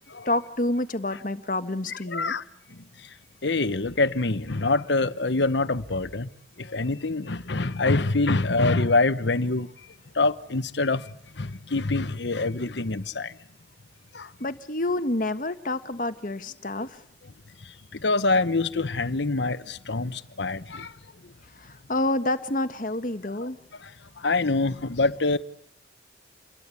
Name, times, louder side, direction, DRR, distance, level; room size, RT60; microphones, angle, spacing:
voice 1, 0.2-2.3 14.4-17.0 21.5-23.6, left 2 dB, 45° left, 1.4 m, -28 dB
voice 2, 2.1-2.4 3.4-6.3 6.6-9.7 10.1-13.3 14.1-14.3 16.8-16.9 18.0-20.9 24.2-25.4, left 3 dB, 70° left, 1.1 m, -25 dB
28.5 x 22.0 x 8.5 m
head